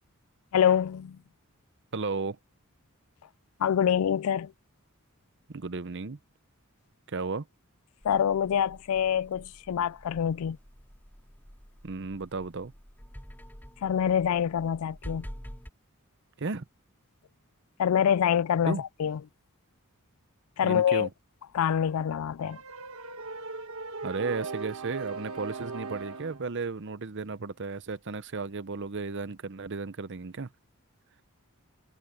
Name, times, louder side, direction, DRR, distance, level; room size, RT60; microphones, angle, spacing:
voice 1, 0.5-1.2 3.6-4.5 8.0-10.6 13.8-15.3 17.8-19.2 20.6-21.1 21.5-22.6, left 8 dB, 75° left, 0.3 m, -25 dB
voice 2, 1.9-2.4 5.5-6.2 7.1-7.5 11.8-12.7 16.4-16.6 18.6-18.8 20.6-21.1 24.0-30.5, right 4 dB, 55° right, 0.8 m, -34 dB
sound 1, 8.0-15.7, equal, 10° left, 3.3 m, -47 dB
sound 2, 22.4-26.5, right 4 dB, 75° right, 1.3 m, -38 dB
head